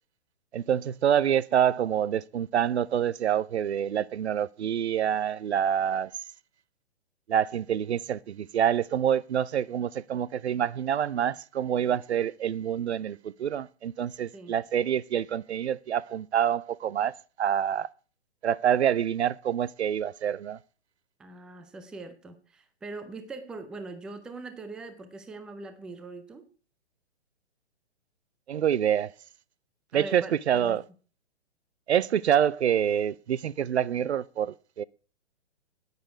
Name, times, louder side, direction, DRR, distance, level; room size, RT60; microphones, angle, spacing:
voice 1, 0.5-6.1 7.3-17.9 18.4-20.6 28.5-29.1 29.9-30.8 31.9-34.8, right 9 dB, 70° right, 0.6 m, -26 dB
voice 2, 21.2-26.5 29.9-30.8, right 3 dB, ahead, 0.4 m, -42 dB
9.9 x 9.3 x 4.6 m
figure-of-eight pair, 125°, 34 cm